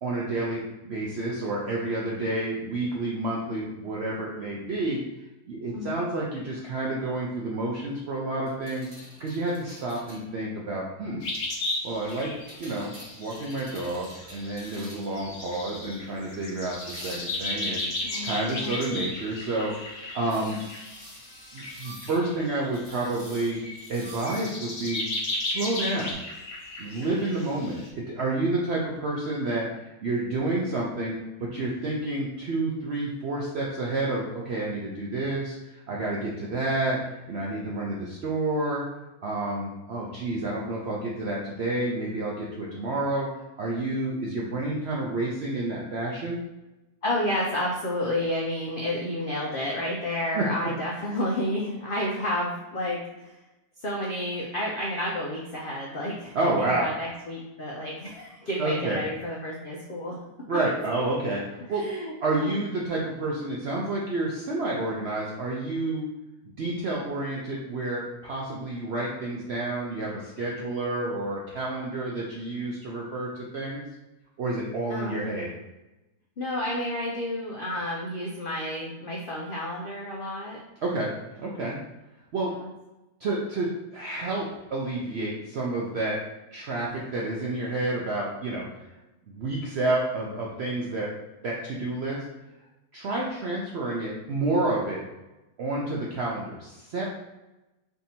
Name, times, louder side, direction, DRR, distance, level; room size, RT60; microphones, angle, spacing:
voice 1, 0.0-5.0 5.5-8.9 9.2-11.2 11.8-12.3 12.6-12.9 13.2-17.8 18.2-20.6 21.5-23.6 23.9-25.0 25.4-26.2 26.8-37.0 37.3-38.8 39.2-43.3 43.6-46.4 50.3-50.5 56.3-56.9 58.6-59.0 60.5-61.9 62.2-66.1 66.6-73.8 74.4-75.5 80.8-81.8 82.3-82.5 83.2-86.2 86.5-88.6 89.3-91.1 91.4-92.2 92.9-95.0 95.6-97.1, right 2 dB, 70° right, -3 dB, 0.6 m, -29 dB
sound 1, 8.5-10.3 12.1-15.3 16.8-17.6 20.3-22.2 22.7-24.5 26.1-26.2, right 1 dB, 30° right, 1.2 m, -47 dB
sound 2, 11.2-23.0 23.5-27.9, left 2 dB, 50° left, 0.9 m, -35 dB
voice 2, 18.0-18.7 47.0-53.3 53.8-60.2 61.7-62.1 62.4-62.6 74.9-75.4 76.4-80.6 82.4-82.7 93.1-93.3, left 1 dB, 70° left, -3 dB, 0.5 m, -31 dB
3.4 x 2.7 x 4.1 m, 1.0 s
omnidirectional pair, 1.7 m